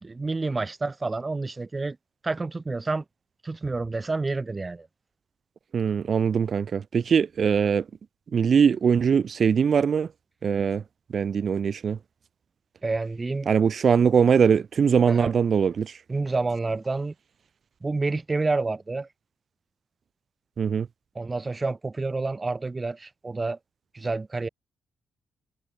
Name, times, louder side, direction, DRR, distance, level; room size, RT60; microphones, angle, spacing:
voice 1, 0.0-2.0 2.2-3.0 3.4-4.9 12.8-13.5 15.1-15.3 16.1-17.1 17.8-19.1 21.2-23.6 23.9-24.5, right 3 dB, 25° right, 3.4 m, -28 dB
voice 2, 5.7-7.9 8.3-10.1 10.4-10.8 11.1-12.0 13.5-16.0 20.6-20.9, right 6 dB, 50° right, 3.6 m, -22 dB
cardioid pair, 110°, 0 cm